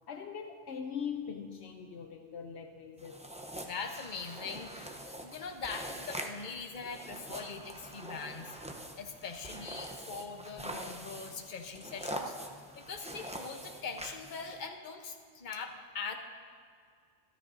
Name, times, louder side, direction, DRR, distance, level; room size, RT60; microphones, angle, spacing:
voice 1, 0.1-3.3, left 7 dB, 70° left, 5 dB, 0.9 m, -41 dB
sound 1, 3.0-14.7, right 1 dB, 5° right, 0.6 m, -44 dB
voice 2, 3.6-8.6 9.0-12.4 12.8-16.1, left 5 dB, 45° left, 4 dB, 1.0 m, -42 dB
26.5 x 10.0 x 2.7 m, 2.2 s
omnidirectional pair, 1.2 m